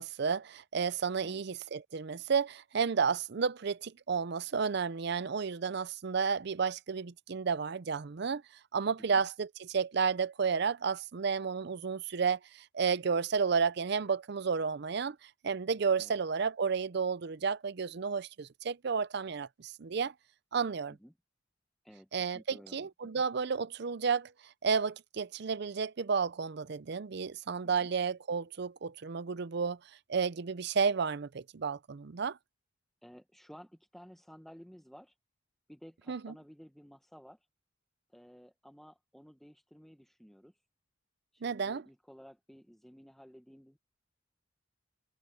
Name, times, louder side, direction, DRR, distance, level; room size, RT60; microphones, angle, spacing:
voice 1, 0.0-8.4 8.7-15.2 15.4-20.1 20.5-20.9 22.1-24.3 24.6-29.8 30.1-32.4 36.1-36.3 41.4-41.8, right 5 dB, 60° right, 0.5 m, -32 dB
voice 2, 21.8-23.1 27.6-27.9 33.0-35.1 35.7-37.4 38.1-40.5 41.3-43.8, equal, ahead, 1.0 m, -54 dB
head